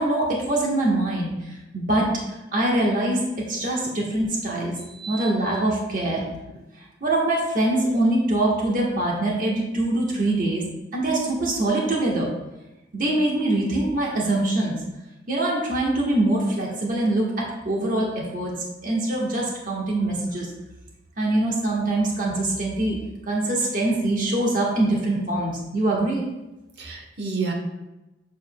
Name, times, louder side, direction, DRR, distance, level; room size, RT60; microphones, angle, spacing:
voice 1, 0.0-1.3 1.7-2.1 2.5-3.2 3.5-4.8 5.1-6.2 7.0-10.6 10.9-12.3 12.9-14.8 15.3-18.5 18.8-20.5 21.2-23.0 23.3-26.3, right 1 dB, 50° right, -3 dB, 1.3 m, -23 dB
voice 2, 4.9-5.3 26.8-27.5, right 4 dB, 70° right, 2 dB, 1.1 m, -30 dB
7.2 x 6.7 x 2.2 m, 1.0 s
head